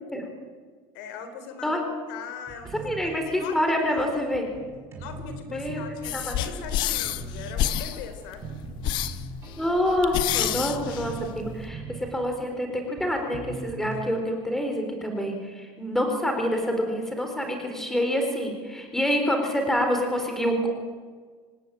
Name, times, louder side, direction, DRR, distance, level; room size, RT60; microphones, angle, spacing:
voice 1, 0.9-3.0 3.2-4.1 5.0-8.5, left 6 dB, 80° left, 8 dB, 4.2 m, -40 dB
sound 1, 2.5-14.0, right 4 dB, 25° right, 5.6 m, -41 dB
voice 2, 2.7-4.4 5.4-5.8 6.1-6.3 9.6-20.7, equal, 5° left, 3 dB, 4.2 m, -27 dB
sound 2, 6.0-11.6, left 11 dB, 50° left, 1.2 m, -29 dB
26.5 x 18.0 x 8.8 m, 1.5 s
cardioid pair, 165°, 10 cm